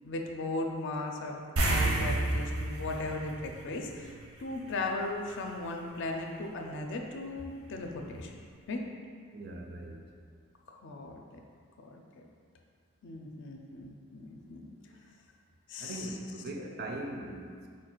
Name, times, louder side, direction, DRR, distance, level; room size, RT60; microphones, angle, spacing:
voice 1, 0.0-4.1 4.4-8.4 8.7-8.8 10.7-11.4 11.8-12.2 13.0-14.7 15.7-16.1 16.6-16.7, left 2 dB, 60° left, 2 dB, 0.4 m, -37 dB
sound 1, 1.6-4.3 4.6-4.8 7.7-7.8 8.1-8.2, right 2 dB, 80° right, 0.7 m, -30 dB
voice 2, 9.3-10.0 15.8-17.7, right 2 dB, 50° right, 1 dB, 0.4 m, -40 dB
4.4 x 2.4 x 4.4 m, 2.1 s
head